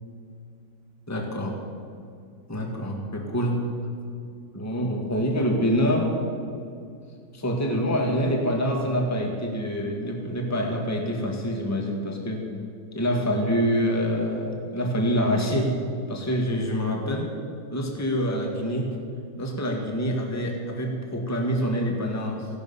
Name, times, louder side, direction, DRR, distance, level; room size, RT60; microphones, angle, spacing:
voice 1, 1.1-1.6 2.5-3.6 4.5-6.2 7.3-12.4 12.9-15.7 16.1-17.3 17.7-18.9 19.4-22.5, equal, 10° left, 1 dB, 1.6 m, -26 dB
16.0 x 12.0 x 5.6 m, 2.4 s
omnidirectional pair, 2.2 m